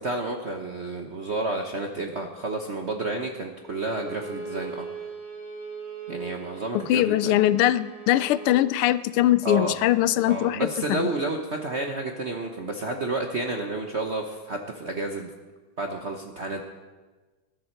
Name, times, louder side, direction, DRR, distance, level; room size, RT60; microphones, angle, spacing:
voice 1, 0.0-4.9 6.1-7.4 9.4-9.7 10.3-15.3 15.8-16.6, right 2 dB, 50° right, 3 dB, 0.8 m, -30 dB
Bowed string instrument, 3.6-8.6, right 5 dB, 80° right, 6.7 m, -39 dB
voice 2, 6.7-11.1, left 13 dB, 85° left, 15 dB, 1.5 m, -22 dB
20.0 x 12.0 x 4.5 m, 1.3 s
omnidirectional pair, 2.4 m